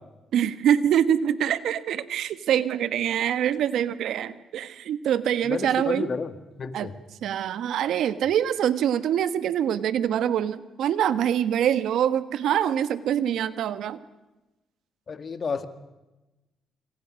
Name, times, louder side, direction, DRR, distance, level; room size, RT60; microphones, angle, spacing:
voice 1, 0.3-6.1 6.7-6.9 7.2-14.0, right 9 dB, 75° right, 13 dB, 1.3 m, -24 dB
voice 2, 5.4-6.3 6.6-6.9 15.1-15.7, left 5 dB, 45° left, 10 dB, 2.0 m, -31 dB
27.0 x 25.5 x 6.4 m, 1.1 s
cardioid pair, 90°, 0 cm